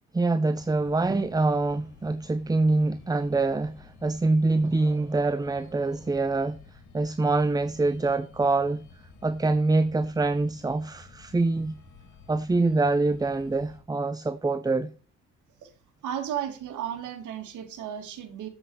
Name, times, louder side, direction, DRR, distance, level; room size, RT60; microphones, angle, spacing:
voice 1, 0.1-8.8 9.2-11.7 12.3-14.9, right 3 dB, 15° right, 0.5 m, -25 dB
sound 1, 0.5-13.8, left 5 dB, 75° left, 2.6 m, -52 dB
voice 2, 16.0-18.5, right 9 dB, 80° right, 2.2 m, -34 dB
7.9 x 7.6 x 4.1 m
cardioid pair, 90°, 30 cm